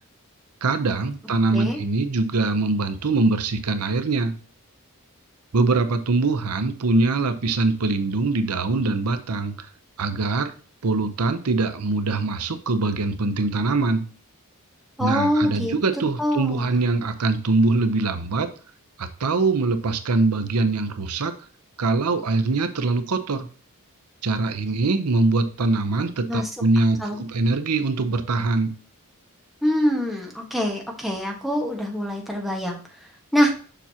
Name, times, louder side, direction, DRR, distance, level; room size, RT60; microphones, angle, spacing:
voice 1, 0.6-4.4 5.5-9.7 10.0-10.5 10.8-14.0 15.0-18.5 19.0-21.3 21.8-23.5 24.2-28.7, right 3 dB, 90° right, 10 dB, 0.7 m, -23 dB
voice 2, 15.0-15.7 16.2-16.7 26.3-26.5 27.0-27.2 29.6-32.8 33.3-33.5, equal, ahead, -1 dB, 1.4 m, -24 dB
7.0 x 5.7 x 2.9 m, 0.40 s
head